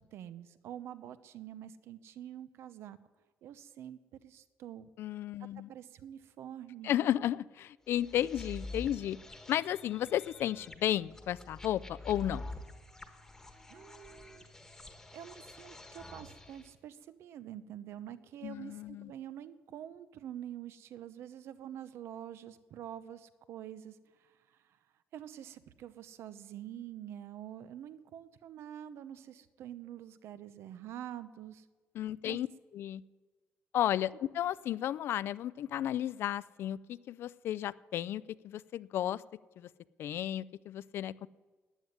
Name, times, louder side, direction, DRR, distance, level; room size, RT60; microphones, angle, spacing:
voice 1, 0.0-3.0 3.4-4.9 5.4-6.9 13.7-14.4 15.1-24.6 25.1-31.6 32.3-32.4, right 10 dB, 70° right, 14 dB, 0.8 m, -46 dB
voice 2, 5.0-5.7 6.8-9.2 9.5-12.4 18.4-19.1 31.9-32.5 32.7-33.0 33.7-39.2 39.6-39.7 40.0-41.3, left 11 dB, 60° left, 19 dB, 0.4 m, -33 dB
sound 1, 7.9-16.7, left 2 dB, 10° left, 1.3 m, -47 dB
14.5 x 9.4 x 9.6 m, 1.3 s
cardioid pair, 180°, 5 cm